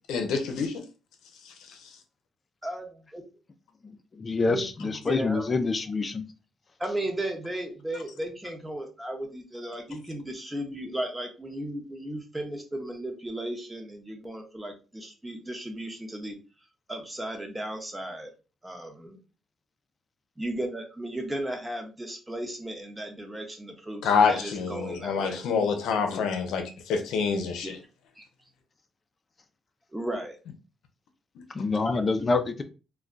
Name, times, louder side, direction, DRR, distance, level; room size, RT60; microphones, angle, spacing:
voice 1, 0.1-0.8 24.0-27.8, left 5 dB, 85° left, 0.6 m, -26 dB
voice 2, 2.6-3.2 4.5-5.5 6.8-16.4 16.9-18.3 18.6-19.2 20.4-25.4 27.6-27.7 28.2-28.3 29.9-30.4 31.8-32.0, right 1 dB, 10° right, 0.9 m, -35 dB
voice 3, 4.2-6.2 31.5-32.6, left 3 dB, 35° left, 0.5 m, -26 dB
2.3 x 2.2 x 3.8 m
cardioid pair, 90°, 0 cm